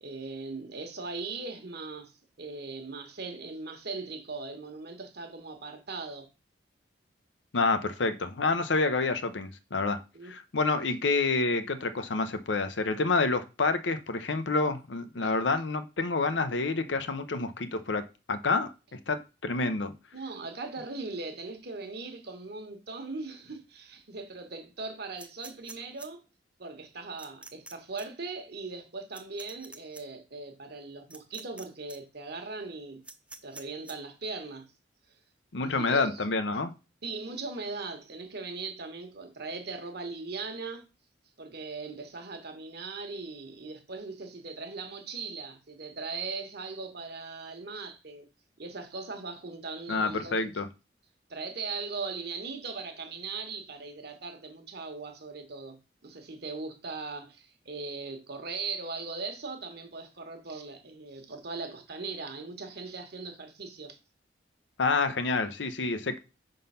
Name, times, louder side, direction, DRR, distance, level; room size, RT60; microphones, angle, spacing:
voice 1, 0.0-6.3 10.1-10.3 10.6-10.7 15.2-15.3 20.1-26.2 26.6-33.0 33.4-34.7 35.6-36.2 37.0-40.9 41.4-48.3 48.6-50.5 51.3-64.0, right 4 dB, 60° right, 1.2 m, -39 dB
voice 2, 7.5-10.0 10.3-19.9 35.5-36.7 49.9-50.7 64.8-66.2, left 3 dB, 80° left, 0.7 m, -28 dB
sound 1, 25.2-26.1 27.2-27.7 28.0-28.1 29.1-30.0 31.1-31.6 31.9-32.0 33.0-33.9, right 2 dB, 5° right, 0.6 m, -46 dB
5.2 x 3.9 x 5.5 m
head